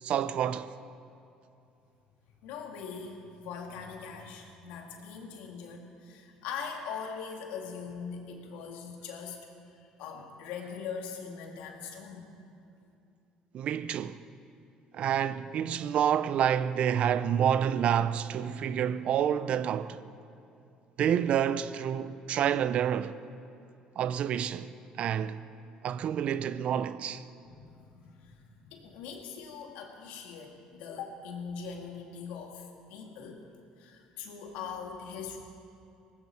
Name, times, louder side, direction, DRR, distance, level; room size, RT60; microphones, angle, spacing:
voice 1, 0.0-0.7 13.5-14.2 14.9-20.0 21.0-23.2 24.0-25.4 25.8-27.2, right 9 dB, 55° right, 0.6 m, -28 dB
voice 2, 2.4-12.2 27.5-33.4 33.8-35.4, left 6 dB, 85° left, 2.2 m, -41 dB
18.5 x 15.5 x 4.6 m
cardioid pair, 105°, 2 cm